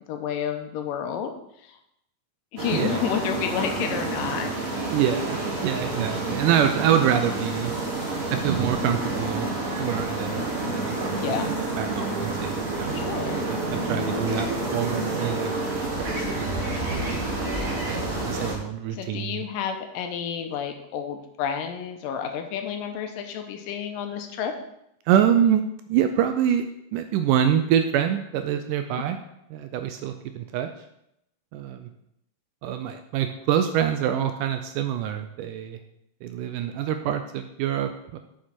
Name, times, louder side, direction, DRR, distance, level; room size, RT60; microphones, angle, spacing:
voice 1, 0.1-1.3 1.6-1.8 2.5-4.5 11.2-11.5 12.9-13.5 18.9-24.5, left 8 dB, 85° left, 5 dB, 2.3 m, -30 dB
sound 1, 2.6-18.5, right 2 dB, 55° right, 0.9 m, -28 dB
voice 2, 2.7-3.0 4.9-7.7 8.3-10.4 10.7-11.4 11.8-13.1 13.5-16.4 17.9-19.4 25.1-26.6 26.9-29.2 29.5-30.7 31.5-31.9 32.6-35.8 36.2-38.2, right 9 dB, 80° right, 7 dB, 1.9 m, -26 dB
7.2 x 6.2 x 4.4 m, 0.80 s
omnidirectional pair, 4.0 m